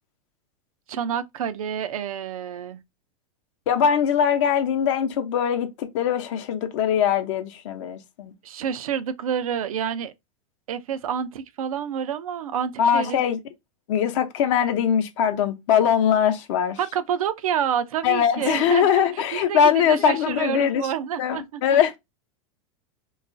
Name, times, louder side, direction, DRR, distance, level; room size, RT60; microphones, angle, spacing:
voice 1, 0.9-2.8 8.4-10.1 10.7-13.2 16.8-21.8, right 8 dB, 80° right, 0.4 m, -28 dB
voice 2, 3.7-8.3 12.8-13.4 13.9-16.8 18.0-20.8 21.2-22.0, left 8 dB, 60° left, 0.6 m, -21 dB
2.9 x 2.3 x 2.5 m
hypercardioid pair, 110°, 18 cm